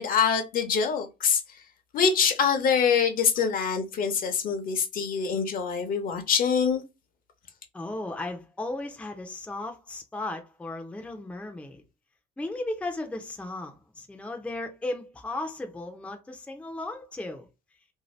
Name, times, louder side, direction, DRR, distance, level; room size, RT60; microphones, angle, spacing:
voice 1, 0.0-1.6 1.9-6.8, left 6 dB, 55° left, 0.8 m, -25 dB
voice 2, 7.7-11.8 12.4-17.5, left 2 dB, 5° left, 0.5 m, -35 dB
2.7 x 2.1 x 3.1 m
cardioid pair, 110°, 17 cm